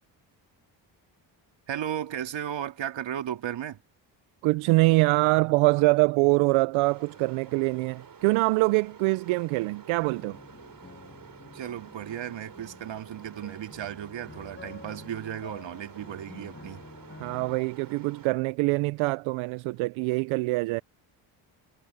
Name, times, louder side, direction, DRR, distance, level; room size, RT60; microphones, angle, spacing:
voice 1, 1.7-3.8 11.5-16.8, right 10 dB, 65° right, 2.5 m, -35 dB
voice 2, 4.4-10.4 17.2-20.8, right 24 dB, 85° right, 0.7 m, -24 dB
sound 1, 6.8-18.3, right 6 dB, 45° right, 4.3 m, -50 dB
sound 2, 10.0-17.6, left 3 dB, 25° left, 7.2 m, -49 dB
supercardioid pair, 60°, 47 cm